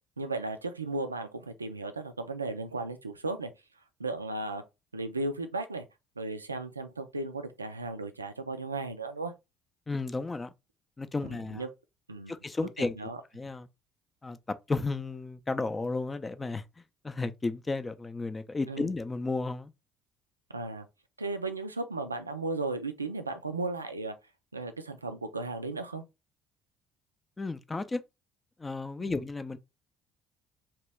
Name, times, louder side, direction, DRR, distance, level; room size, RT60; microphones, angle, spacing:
voice 1, 0.2-3.5 4.0-4.6 4.9-5.8 6.2-9.3 11.2-11.7 12.1-12.4 12.8-13.2 18.7-18.9 20.5-20.9 21.2-24.1 24.5-26.0 29.0-29.2, right 3 dB, 85° right, 0.3 m, -35 dB
voice 2, 9.9-10.5 11.0-11.6 12.3-13.0 13.3-13.7 14.2-16.6 17.0-19.7 27.4-28.0 28.6-29.6, left 3 dB, 20° left, 0.4 m, -33 dB
2.9 x 2.9 x 3.3 m
figure-of-eight pair, 50°, 0 cm